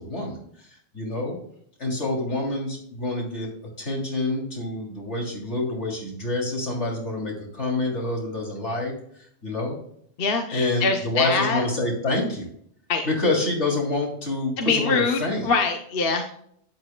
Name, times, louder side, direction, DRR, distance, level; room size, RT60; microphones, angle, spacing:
voice 1, 0.0-1.4 1.8-8.9 9.4-9.8 10.5-12.5 13.1-15.5, left 2 dB, 80° left, -1 dB, 3.5 m, -27 dB
voice 2, 10.2-11.6 12.9-13.0 14.6-16.3, left 4 dB, 55° left, 4 dB, 1.1 m, -24 dB
11.5 x 9.7 x 2.2 m, 0.67 s
omnidirectional pair, 1.2 m